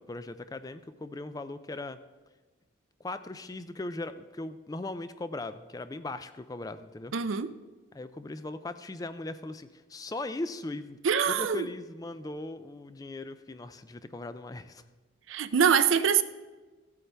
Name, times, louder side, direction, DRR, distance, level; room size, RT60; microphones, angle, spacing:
voice 1, 0.0-2.0 3.0-7.1 7.9-11.0 11.3-14.8, left 2 dB, 20° left, 12 dB, 0.3 m, -39 dB
voice 2, 7.1-7.5 11.0-11.7 15.3-16.2, right 7 dB, 75° right, 13 dB, 0.5 m, -24 dB
15.5 x 8.4 x 3.4 m, 1.3 s
head